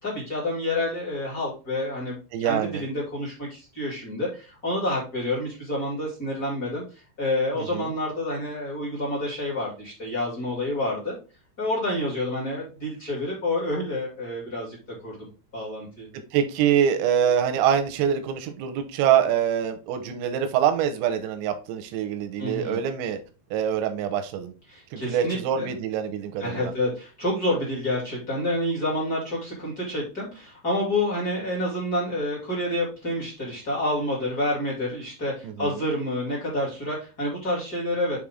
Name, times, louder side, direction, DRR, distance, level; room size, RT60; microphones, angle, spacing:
voice 1, 0.0-11.1 11.6-14.8 15.0-15.2 15.5-16.1 22.4-22.8 24.7-25.7 26.4-38.2, left 1 dB, 35° left, 1.5 m, -28 dB
voice 2, 2.3-2.8 7.6-7.9 16.3-23.2 23.5-24.5 24.9-26.7 35.4-35.8, right 9 dB, 85° right, 2.6 m, -25 dB
7.5 x 3.6 x 3.6 m
omnidirectional pair, 5.7 m